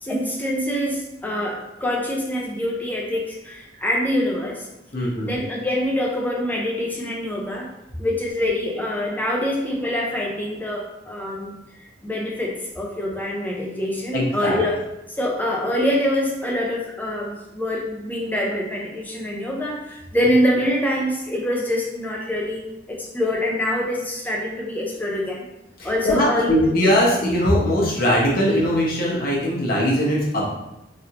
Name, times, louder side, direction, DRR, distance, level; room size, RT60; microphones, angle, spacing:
voice 1, 0.0-4.7 5.2-7.7 8.0-11.6 12.0-14.8 15.2-22.6 22.9-25.4 25.8-26.7, left 1 dB, 10° left, -2 dB, 0.5 m, -25 dB
voice 2, 4.9-5.4 14.1-14.6 25.8-30.5, equal, 55° left, -5 dB, 1.0 m, -20 dB
3.3 x 2.6 x 2.8 m, 0.90 s
head